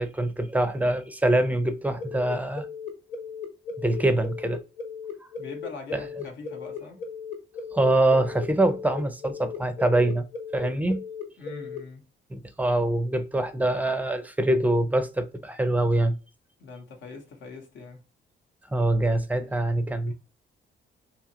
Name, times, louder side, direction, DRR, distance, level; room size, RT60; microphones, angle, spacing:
voice 1, 0.0-2.7 3.8-4.6 5.9-6.0 7.7-10.2 10.5-11.0 12.3-16.2 18.7-20.1, right 1 dB, 10° right, 0.5 m, -24 dB
sound 1, 2.0-11.8, left 5 dB, 35° left, 1.0 m, -36 dB
voice 2, 5.4-7.1 8.1-8.2 11.4-12.1 16.6-18.0, left 3 dB, 70° left, 0.9 m, -42 dB
2.8 x 2.4 x 2.7 m
cardioid pair, 90°, 20 cm